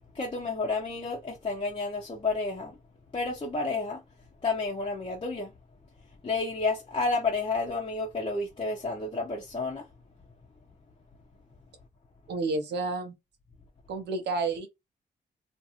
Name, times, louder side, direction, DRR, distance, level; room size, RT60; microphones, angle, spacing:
voice 1, 0.1-2.8 3.1-4.0 4.4-5.5 6.2-9.9, left 3 dB, 30° left, 0.8 m, -30 dB
voice 2, 12.3-13.1 13.9-14.7, right 3 dB, 85° right, 0.8 m, -30 dB
2.6 x 2.4 x 2.8 m
cardioid pair, 80°, 17 cm